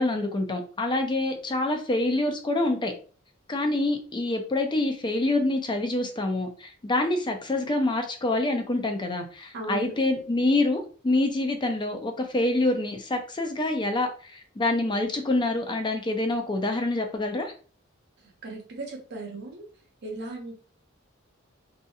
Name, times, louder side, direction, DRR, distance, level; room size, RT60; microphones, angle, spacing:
voice 1, 0.0-2.9 3.5-17.5, left 2 dB, 25° left, 5 dB, 0.4 m, -26 dB
voice 2, 9.5-9.9 18.4-19.6 20.0-20.5, right 2 dB, 55° right, 0 dB, 0.8 m, -36 dB
2.7 x 2.6 x 2.3 m, 0.39 s
head